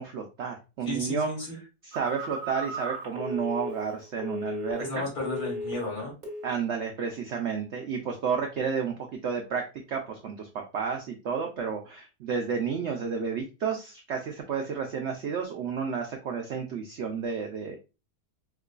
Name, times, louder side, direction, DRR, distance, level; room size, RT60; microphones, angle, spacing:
voice 1, 0.0-1.3 1.8-5.0 6.4-9.6 9.9-10.5 10.7-17.8, right 6 dB, 80° right, 3 dB, 0.6 m, -31 dB
voice 2, 0.9-1.6 4.8-6.1, left 2 dB, 70° left, -2 dB, 2.2 m, -33 dB
Telephone, 1.9-5.0 5.2-5.9 6.2-6.5, equal, 35° right, 1.5 m, -36 dB
4.7 x 2.2 x 2.4 m, 0.29 s
omnidirectional pair, 1.8 m